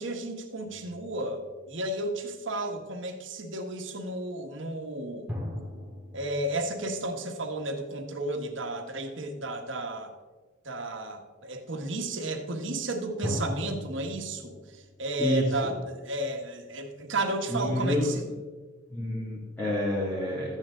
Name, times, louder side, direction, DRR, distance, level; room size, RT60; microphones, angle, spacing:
voice 1, 0.0-5.3 6.1-10.1 10.6-18.3, right 1 dB, 65° right, 4 dB, 1.3 m, -33 dB
sound 1, 0.7-2.3 5.3-8.0 13.2-16.2, left 1 dB, 10° right, 1.7 m, -40 dB
voice 2, 17.5-18.1 18.9-20.6, left 1 dB, 10° left, -6 dB, 2.3 m, -29 dB
13.0 x 8.9 x 3.7 m, 1.3 s
head